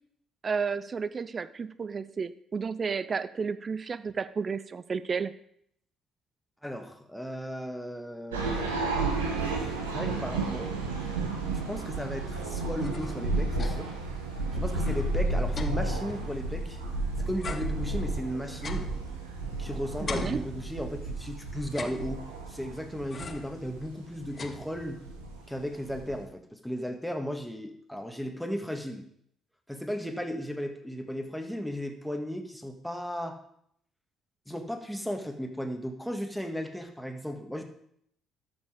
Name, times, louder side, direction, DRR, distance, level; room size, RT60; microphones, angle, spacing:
voice 1, 0.4-5.3 20.0-20.4, right 5 dB, 40° right, 16 dB, 0.5 m, -32 dB
voice 2, 6.6-9.2 9.9-10.8 11.5-13.9 14.5-16.8 17.2-18.9 19.6-25.0 25.5-29.0 29.7-33.4 34.5-37.6, equal, ahead, 5 dB, 1.8 m, -35 dB
sound 1, 8.3-26.2, right 2 dB, 90° right, 1.4 m, -32 dB
sound 2, 12.8-14.0 14.4-14.5 14.8-17.0 17.4-19.6 20.1-21.1 21.6-22.5 23.1-23.6 24.0-25.1, left 5 dB, 40° left, 1.1 m, -42 dB
13.0 x 5.5 x 5.1 m, 0.69 s
hypercardioid pair, 50°, 0 cm